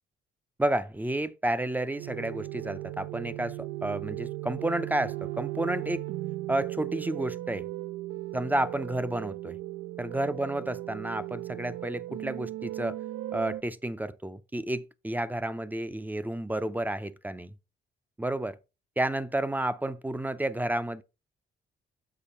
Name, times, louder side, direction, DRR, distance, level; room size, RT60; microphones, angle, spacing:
voice 1, 0.6-6.0 6.5-7.7 8.3-9.6 10.0-13.0 13.3-17.6 18.2-18.6 19.0-21.0, right 1 dB, 10° right, 0.5 m, -31 dB
sound 1, 2.0-13.6, right 16 dB, 80° right, 0.5 m, -37 dB
6.9 x 5.1 x 4.2 m
cardioid pair, 90°, 20 cm